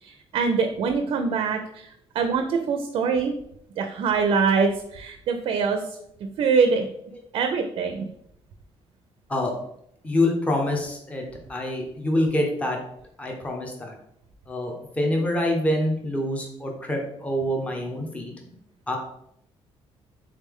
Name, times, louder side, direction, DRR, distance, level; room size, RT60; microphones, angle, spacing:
voice 1, 0.0-3.3 3.8-5.8 6.4-6.9 7.3-8.1, right 5 dB, 55° right, 6 dB, 0.4 m, -24 dB
voice 2, 10.0-12.8 13.2-14.0 14.5-18.4 18.9-19.0, left 1 dB, 10° left, 0 dB, 0.6 m, -26 dB
3.7 x 3.2 x 3.5 m, 0.73 s
cardioid pair, 175°, 11 cm